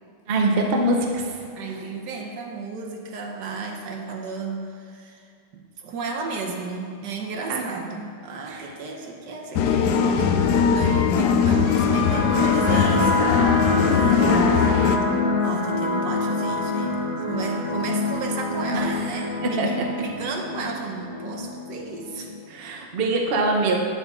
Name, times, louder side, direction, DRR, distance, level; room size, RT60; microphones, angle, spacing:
voice 1, 0.3-1.0 7.5-7.6 8.5-8.7 18.7-18.9 19.4-19.7 22.5-23.8, right 2 dB, 85° right, 1 dB, 0.5 m, -23 dB
voice 2, 1.5-5.3 5.5-13.5 13.8-14.6 15.4-22.3 22.6-22.8, right 4 dB, 60° right, 1 dB, 1.3 m, -33 dB
sound 1, 9.5-15.0, left 7 dB, 85° left, 0.9 m, -20 dB
sound 2, 11.3-22.3, left 2 dB, 20° right, 1.8 m, -26 dB
8.6 x 8.1 x 3.6 m, 2.4 s
omnidirectional pair, 2.4 m